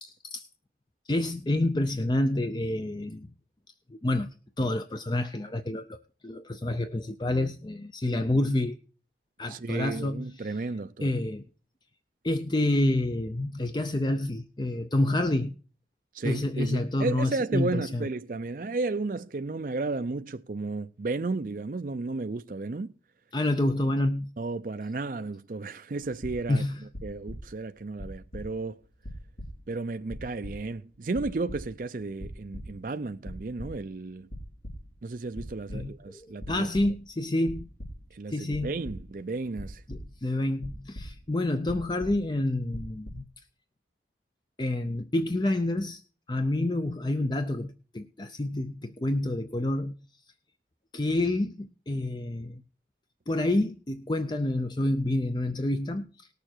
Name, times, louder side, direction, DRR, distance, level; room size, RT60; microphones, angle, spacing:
voice 1, 0.0-0.5 1.1-3.3 3.9-4.3 4.6-8.8 9.4-10.6 11.0-11.4 12.2-15.5 16.2-18.0 23.3-24.3 26.5-26.8 35.7-37.7 38.3-38.8 39.9-43.2 44.6-46.0 46.3-49.9 50.9-52.6 53.3-56.3, left 1 dB, 25° left, 0.5 m, -28 dB
voice 2, 9.5-11.1 16.1-22.9 24.4-26.6 27.0-28.8 29.7-34.3 35.0-36.7 38.1-39.8, right 3 dB, 50° right, 0.5 m, -33 dB
sound 1, 26.0-26.6 26.9-27.7 28.0-28.8 29.0-29.8 30.1-30.9 31.2-31.9 32.2-33.0 33.3-33.9 34.2-35.1 35.4-36.1 36.4-37.2 37.5-38.1 38.5-40.3 40.6-41.4 41.7-42.4 42.7-43.1, equal, 75° left, 3.6 m, -41 dB
19.0 x 6.8 x 4.4 m
head